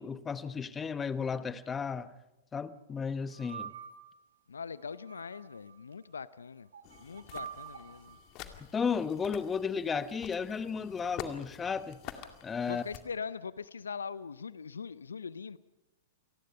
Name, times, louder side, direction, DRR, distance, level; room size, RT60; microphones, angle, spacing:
voice 1, 0.0-2.1 2.5-3.7 8.7-12.0 12.4-12.8, left 6 dB, 15° left, 1.1 m, -34 dB
Wine Glass Resonance, 3.3-4.2 4.9-5.8 6.7-8.2, right 7 dB, 75° right, 2.3 m, -46 dB
voice 2, 4.5-6.7 7.0-8.2 12.7-15.6, left 6 dB, 80° left, 0.6 m, -41 dB
sound 1, 6.8-13.0, left 10 dB, 40° left, 2.2 m, -48 dB
28.5 x 19.5 x 5.6 m
figure-of-eight pair, 105°, 0 cm